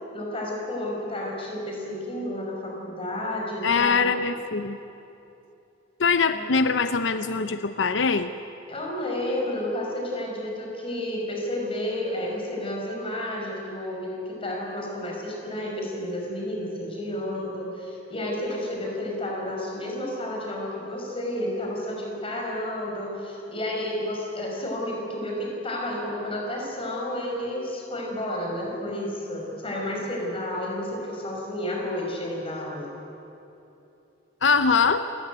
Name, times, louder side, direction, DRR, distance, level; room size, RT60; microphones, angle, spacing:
voice 1, 0.1-4.1 6.3-6.5 8.7-32.9, left 1 dB, 30° left, -1 dB, 5.6 m, -31 dB
voice 2, 3.6-4.8 6.0-8.3 34.4-35.0, left 5 dB, 90° left, 10 dB, 0.7 m, -22 dB
27.5 x 15.0 x 9.5 m, 2.9 s
head